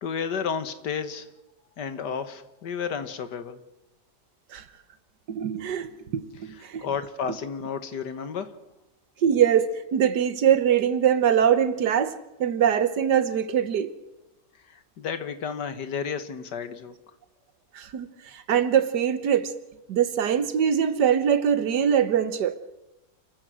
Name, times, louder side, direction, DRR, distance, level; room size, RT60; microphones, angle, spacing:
voice 1, 0.0-1.3 1.8-3.6 6.8-8.6 15.0-17.0, left 6 dB, 90° left, 2.0 m, -32 dB
voice 2, 5.3-6.8 7.3-7.4 9.2-12.2 12.4-13.9 17.8-18.1 18.3-19.5 19.9-22.6, right 8 dB, 90° right, 1.7 m, -23 dB
29.5 x 14.5 x 6.3 m
omnidirectional pair, 1.8 m